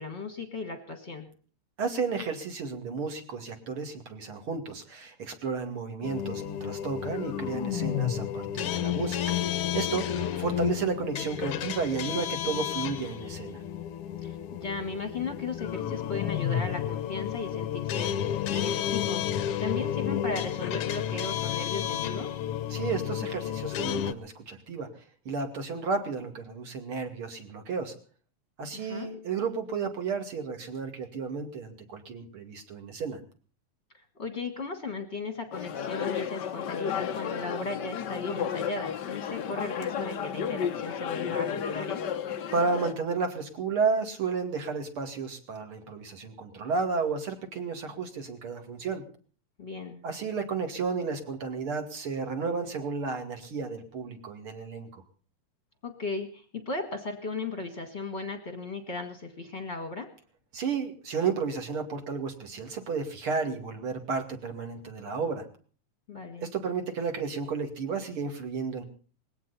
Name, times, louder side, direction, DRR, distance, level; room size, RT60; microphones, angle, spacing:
voice 1, 0.0-1.3 9.9-10.3 14.2-19.2 19.6-22.3 28.7-29.1 33.9-42.0 49.6-50.0 55.8-60.1 66.1-66.5, left 3 dB, 30° left, 6 dB, 1.5 m, -36 dB
voice 2, 1.8-13.6 22.7-24.9 25.2-27.9 28.6-33.2 42.5-49.0 50.0-55.0 60.5-65.4 66.4-68.8, right 5 dB, 45° right, 5 dB, 3.0 m, -32 dB
sound 1, 6.0-24.1, left 10 dB, 65° left, 1.5 m, -31 dB
sound 2, 35.5-42.9, left 8 dB, 85° left, 0.9 m, -32 dB
20.5 x 16.5 x 4.2 m, 0.41 s
omnidirectional pair, 3.5 m